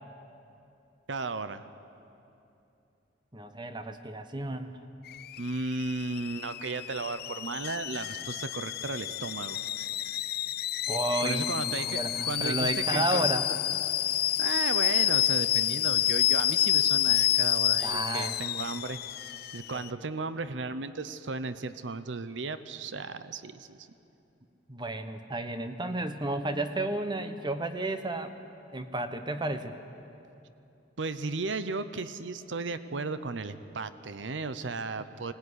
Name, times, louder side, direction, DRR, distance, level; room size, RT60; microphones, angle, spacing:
voice 1, 1.1-1.7 5.4-9.6 11.2-13.4 14.4-19.3 19.5-23.9 31.0-35.3, right 3 dB, 90° right, 13 dB, 0.8 m, -35 dB
voice 2, 3.3-4.8 10.9-13.5 17.8-18.3 19.7-20.0 24.7-28.3 28.7-29.8, right 2 dB, 25° right, 9 dB, 1.1 m, -32 dB
Alarm / Boiling, 5.1-19.9, left 12 dB, 55° left, 0.5 m, -29 dB
20.0 x 18.5 x 9.8 m, 2.8 s
head